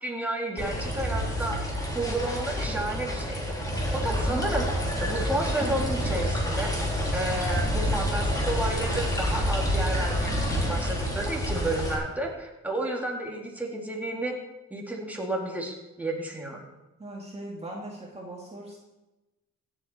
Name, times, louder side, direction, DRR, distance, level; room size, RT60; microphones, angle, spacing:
voice 1, 0.0-1.6 1.9-3.4 3.9-4.7 5.0-6.7 7.1-10.4 10.7-14.4 14.7-16.6, right 1 dB, 5° right, -1 dB, 2.7 m, -31 dB
sound 1, 0.6-12.0, equal, 10° left, 3.6 m, -28 dB
voice 2, 17.0-18.8, right 1 dB, 20° right, -2 dB, 2.4 m, -39 dB
16.0 x 8.0 x 4.5 m, 1.0 s
cardioid pair, 90°, 30 cm